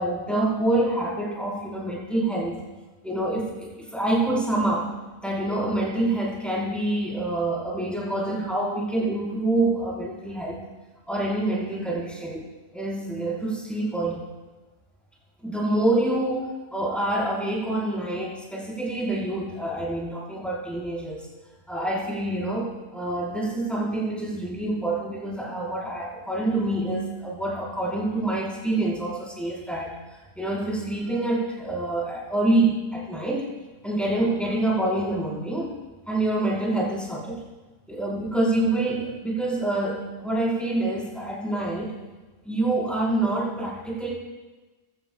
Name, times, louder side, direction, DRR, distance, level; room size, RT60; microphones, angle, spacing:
voice 1, 0.0-2.6 3.0-4.9 5.2-10.6 11.1-14.2 15.4-21.3 21.7-30.0 30.4-33.5 33.8-35.8 36.1-37.4 37.9-41.9 42.4-44.1, right 2 dB, ahead, -6 dB, 4.7 m, -26 dB
20.5 x 15.5 x 2.4 m, 1.2 s
omnidirectional pair, 1.2 m